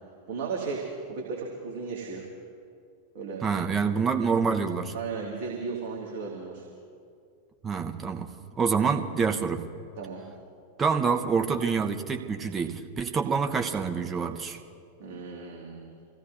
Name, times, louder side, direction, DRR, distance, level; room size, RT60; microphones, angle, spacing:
voice 1, 0.3-2.3 3.1-3.4 4.9-6.7 10.0-10.2 15.0-15.9, right 4 dB, 50° right, -2 dB, 2.2 m, -35 dB
voice 2, 3.4-4.9 7.6-8.3 8.6-9.6 10.8-14.6, right 5 dB, 20° right, 5 dB, 1.0 m, -27 dB
26.5 x 16.0 x 2.7 m, 2.3 s
figure-of-eight pair, 90°, 0 cm